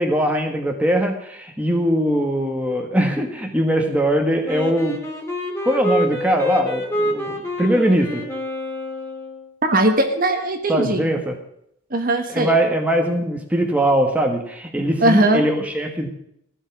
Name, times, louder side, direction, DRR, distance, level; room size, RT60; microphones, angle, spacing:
voice 1, 0.0-5.0 5.6-8.2 10.7-11.4 12.3-16.1, right 1 dB, 5° right, 3 dB, 1.5 m, -21 dB
Wind instrument woodwind instrument, 4.4-9.5, equal, 15° left, 2.6 m, -27 dB
voice 2, 9.6-11.2 11.9-12.6 15.0-15.4, right 1 dB, 45° right, 6 dB, 1.5 m, -19 dB
15.5 x 5.5 x 9.4 m, 0.71 s
head